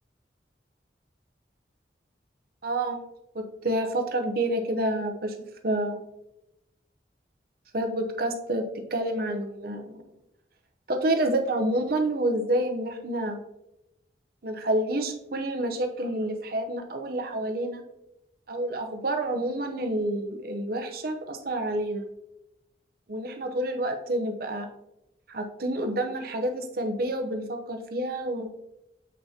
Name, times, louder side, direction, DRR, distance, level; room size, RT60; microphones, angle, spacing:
voice 1, 2.6-3.0 3.3-5.4 5.6-6.0 7.7-8.6 8.9-10.0 10.9-13.4 14.4-17.8 18.5-22.0 23.1-24.7 25.3-28.5, right 1 dB, 55° right, 5 dB, 0.8 m, -28 dB
7.3 x 5.7 x 2.8 m, 0.88 s
head